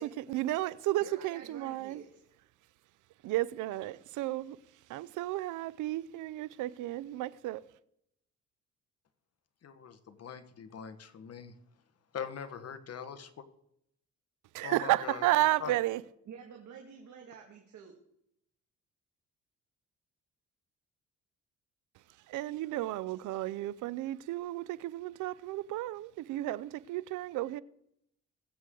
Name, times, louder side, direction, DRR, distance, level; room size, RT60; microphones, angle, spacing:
voice 1, 0.0-2.0 3.2-7.7 14.5-16.0 21.9-27.6, right 16 dB, 90° right, 0.6 m, -33 dB
voice 2, 1.0-2.1 16.3-17.9, right 6 dB, 75° right, 2.2 m, -49 dB
voice 3, 9.6-11.5 12.1-13.3 14.6-15.2 15.6-15.7, left 7 dB, 55° left, 1.5 m, -42 dB
20.5 x 8.2 x 3.9 m
cardioid pair, 90°, 30 cm